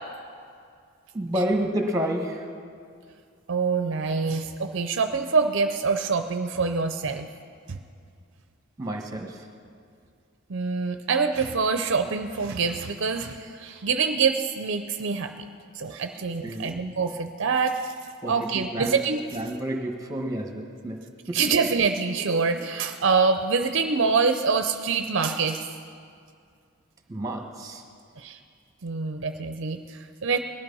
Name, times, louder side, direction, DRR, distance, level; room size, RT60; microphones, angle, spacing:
voice 1, 1.1-2.5 8.8-9.4 16.4-16.8 18.2-19.0 19.3-21.0 21.3-21.4 27.1-27.8, right 1 dB, 15° right, 3 dB, 1.4 m, -29 dB
voice 2, 3.5-7.3 7.7-7.8 10.5-15.3 15.7-17.9 18.3-19.2 21.3-25.7 28.2-28.4 28.8-30.4, right 5 dB, 55° right, 7 dB, 0.6 m, -25 dB
18.5 x 12.5 x 5.5 m, 2.3 s
head